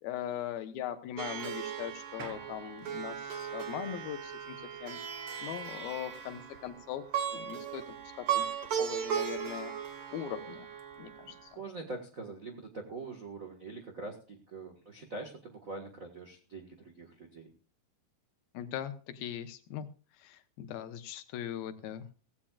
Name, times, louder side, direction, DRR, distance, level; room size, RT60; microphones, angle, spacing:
voice 1, 0.0-5.0 5.4-7.0 7.3-8.5 8.8-9.7 10.1-10.7 11.0-11.6 18.5-19.9 20.2-22.1, left 10 dB, 75° left, 9 dB, 2.9 m, -40 dB
Plucked string instrument, 1.2-11.5, right 8 dB, 60° right, 1.4 m, -37 dB
voice 2, 11.5-17.5, right 3 dB, 85° right, 4 dB, 0.7 m, -43 dB
17.5 x 16.0 x 2.4 m, 0.37 s
omnidirectional pair, 4.4 m